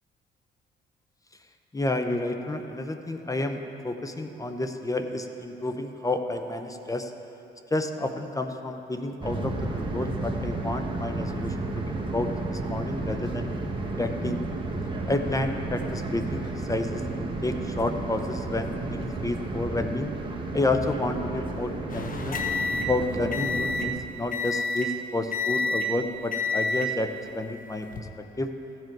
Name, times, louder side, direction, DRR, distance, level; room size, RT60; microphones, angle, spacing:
voice 1, 1.7-7.1 7.7-13.5 14.0-14.4 15.1-20.1 20.5-22.4 22.8-27.9 28.4-28.5, left 2 dB, 15° left, 6 dB, 0.8 m, -30 dB
sound 1, 9.2-23.9, right 2 dB, 25° right, 1.2 m, -32 dB
sound 2, 21.9-24.0 24.3-25.0 25.3-26.0 26.3-26.9 27.7-28.0, left 2 dB, 45° left, 1.0 m, -29 dB
15.0 x 7.7 x 4.6 m, 2.9 s
cardioid pair, 90°, 20 cm